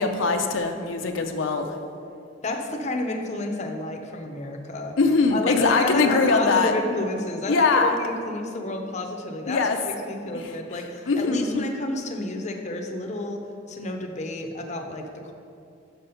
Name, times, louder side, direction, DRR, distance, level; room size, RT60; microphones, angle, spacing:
voice 1, 0.0-1.8 5.0-6.7 7.5-8.0 9.5-9.8 10.3-10.5 11.1-11.6, left 4 dB, 85° left, 5 dB, 0.5 m, -22 dB
voice 2, 2.4-5.0 5.3-13.4 13.7-15.3, left 2 dB, 35° left, 3 dB, 0.6 m, -30 dB
5.9 x 5.6 x 5.5 m, 2.5 s
head